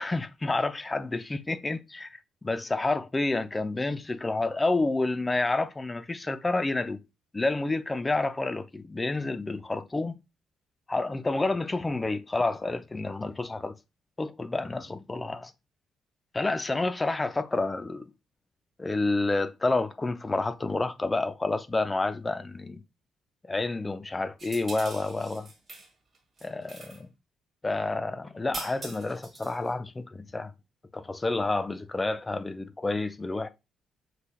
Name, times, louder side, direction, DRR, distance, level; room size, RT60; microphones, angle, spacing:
voice 1, 0.0-7.0 7.3-10.2 10.9-13.8 14.2-15.5 16.3-18.0 18.8-22.8 23.4-25.5 26.4-27.1 27.6-30.5 30.9-33.5, left 2 dB, 20° left, 0.6 m, -29 dB
sound 1, 24.4-25.9 26.1-27.0 28.5-29.7, right 3 dB, 35° right, 1.6 m, -43 dB
5.8 x 3.6 x 2.3 m
figure-of-eight pair, 40°, 0 cm